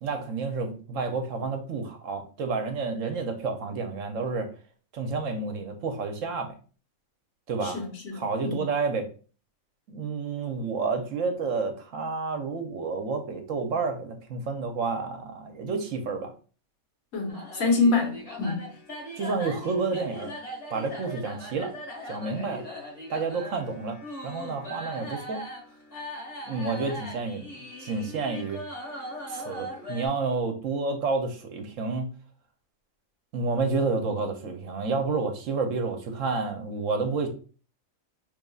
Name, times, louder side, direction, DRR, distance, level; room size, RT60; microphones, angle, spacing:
voice 1, 0.0-4.5 4.9-6.5 7.5-7.8 8.1-9.1 9.9-16.3 19.1-20.3 20.7-21.7 22.1-22.7 23.1-24.0 24.2-25.4 26.5-27.5 27.8-28.6 29.3-32.1 33.3-37.3, right 4 dB, 70° right, 1.0 m, -30 dB
voice 2, 7.6-8.6 17.1-18.7, left 3 dB, 75° left, 1.5 m, -26 dB
sound 1, 17.3-30.1, equal, 50° left, 1.8 m, -40 dB
5.1 x 3.2 x 2.3 m
omnidirectional pair, 1.5 m